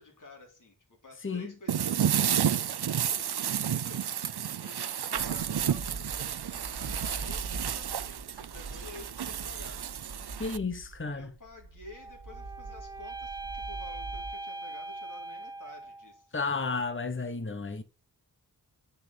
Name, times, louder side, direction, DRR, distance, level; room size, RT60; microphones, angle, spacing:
voice 1, 0.0-9.8 11.1-16.4, left 3 dB, 50° left, 3.7 m, -51 dB
voice 2, 1.2-1.5 10.4-11.3 16.3-17.8, left 4 dB, 30° left, 1.2 m, -32 dB
sound 1, 1.7-10.6, right 9 dB, 70° right, 0.7 m, -31 dB
sound 2, 5.1-14.3, right 3 dB, 90° right, 1.7 m, -44 dB
sound 3, 11.9-16.2, right 3 dB, 10° right, 0.8 m, -41 dB
10.0 x 5.6 x 8.5 m
wide cardioid pair, 75°, 40 cm